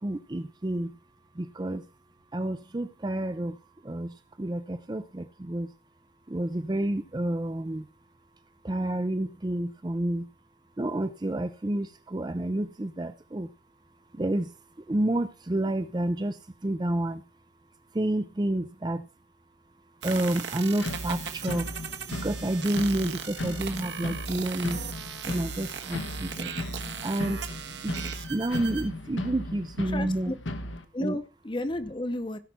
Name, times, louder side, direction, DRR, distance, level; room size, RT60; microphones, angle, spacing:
voice 1, 0.0-1.0 1.3-1.9 2.3-5.7 6.3-7.9 8.6-10.3 10.8-13.5 14.1-17.2 17.9-19.1 20.0-21.7 22.1-24.8 25.2-26.5 27.0-27.4 27.8-27.9 28.3-30.3 31.0-31.2, right 1 dB, 20° right, 0.5 m, -30 dB
sound 1, 20.0-28.9, right 7 dB, 65° right, 1.4 m, -38 dB
sound 2, 20.8-30.8, left 1 dB, 80° left, 1.2 m, -37 dB
voice 2, 29.9-30.3 30.9-32.4, left 1 dB, 25° left, 0.8 m, -32 dB
16.0 x 5.8 x 4.4 m
head